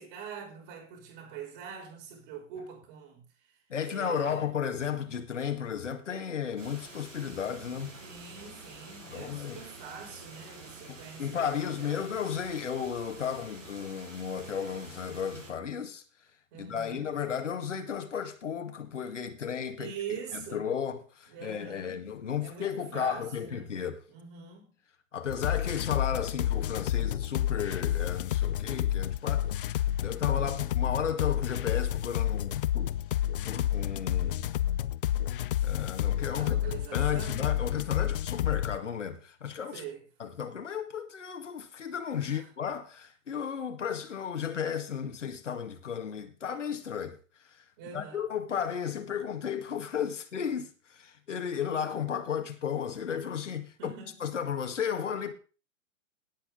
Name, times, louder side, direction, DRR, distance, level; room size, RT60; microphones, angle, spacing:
voice 1, 0.0-3.6 3.8-4.4 8.0-12.1 16.5-17.1 19.8-20.7 21.3-22.1 22.4-23.7 24.1-24.8 36.4-37.6 39.7-40.1 42.2-42.5 47.8-48.2 53.8-54.2, right 7 dB, 40° right, 6.0 m, -43 dB
voice 2, 3.7-7.9 9.1-9.6 10.9-16.0 16.5-24.0 25.1-33.0 33.4-34.5 35.6-36.6 36.9-39.8 40.2-47.2 47.9-53.9 54.2-55.3, left 8 dB, 65° left, 2.0 m, -34 dB
sound 1, 6.6-15.5, right 3 dB, 80° right, 7.7 m, -48 dB
sound 2, 25.3-38.8, left 12 dB, 45° left, 0.6 m, -30 dB
18.0 x 7.9 x 3.8 m
figure-of-eight pair, 115°, 38 cm